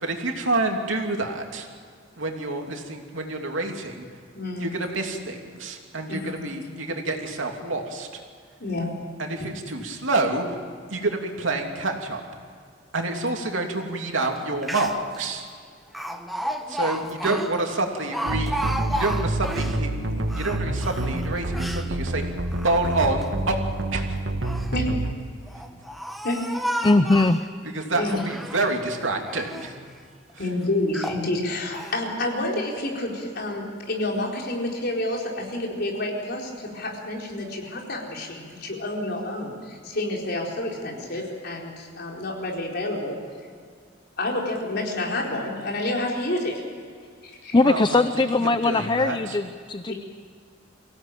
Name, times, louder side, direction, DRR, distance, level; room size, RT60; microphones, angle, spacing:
voice 1, 0.0-1.7 2.2-4.1 4.6-8.2 9.2-10.6 10.9-12.2 12.9-15.5 16.7-22.2 22.6-23.6 23.9-24.2 27.7-29.8 47.6-49.4, right 2 dB, 85° right, 2 dB, 2.9 m, -28 dB
voice 2, 4.3-4.7 6.1-6.3 8.6-8.9 17.2-17.3 24.7-24.9 26.2-26.5 27.9-28.2 30.4-43.2 44.2-46.6 47.2-47.6 49.9-50.0, left 1 dB, 55° left, -1 dB, 4.5 m, -29 dB
Speech, 14.4-14.5 14.6-15.2 15.9-19.8 20.2-21.9 22.4-23.3 24.2-24.8 25.5-27.5 28.0-28.8 29.2-29.7 30.3-30.4 30.9-31.3 31.7-32.0, equal, ahead, 1.3 m, -32 dB
sound 1, 18.3-25.2, right 1 dB, 70° right, 1.8 m, -28 dB
voice 3, 26.8-27.4 47.5-49.9, left 2 dB, 25° left, 11 dB, 0.5 m, -20 dB
24.5 x 17.0 x 9.1 m, 2.1 s
head